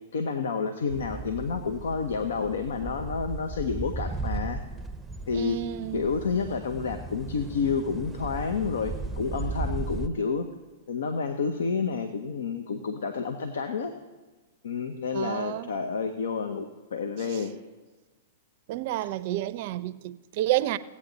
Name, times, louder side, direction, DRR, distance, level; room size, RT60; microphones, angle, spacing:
voice 1, 0.1-4.6 5.3-5.6 5.9-10.5 10.9-13.9 14.6-17.5, left 5 dB, 80° left, 0.7 m, -29 dB
sound 1, 0.9-10.1, right 3 dB, 10° right, 0.6 m, -36 dB
voice 2, 5.3-6.1 15.1-15.7 17.3-17.4 18.7-20.8, right 15 dB, 55° right, 0.5 m, -30 dB
16.5 x 8.5 x 3.9 m
hypercardioid pair, 115°, 0 cm